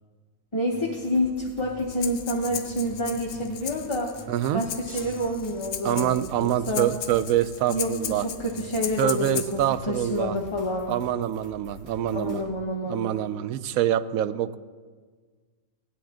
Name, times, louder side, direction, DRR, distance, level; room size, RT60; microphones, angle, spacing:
voice 1, 0.5-4.1 4.5-6.9 7.7-10.9 12.0-13.0, left 1 dB, 25° left, -3 dB, 0.9 m, -28 dB
sound 1, 0.7-12.4, left 1 dB, 25° right, 1.8 m, -46 dB
Breathing, 1.9-9.7, left 8 dB, 70° left, 1.0 m, -36 dB
voice 2, 4.3-4.6 5.8-8.2 9.0-10.4 10.9-12.5 12.9-14.6, right 11 dB, 80° right, 14 dB, 1.0 m, -25 dB
sound 2, 4.9-6.2, equal, 50° right, 4.0 m, -48 dB
17.5 x 10.0 x 3.6 m, 1.5 s
omnidirectional pair, 1.4 m